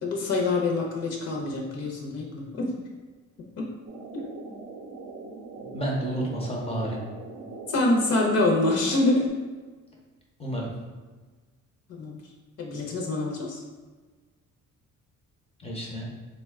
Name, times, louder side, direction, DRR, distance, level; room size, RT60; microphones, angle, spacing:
voice 1, 0.0-2.7 3.6-3.7 7.7-9.3 12.0-12.2 12.6-13.6, left 2 dB, 60° left, 0 dB, 0.7 m, -25 dB
sound 1, 3.9-9.3, right 3 dB, 50° right, 0.5 m, -41 dB
voice 2, 5.6-7.0 10.4-10.7 15.6-16.1, right 1 dB, 20° left, -2 dB, 0.5 m, -30 dB
3.8 x 2.2 x 3.4 m, 1.3 s
cardioid pair, 165°, 30 cm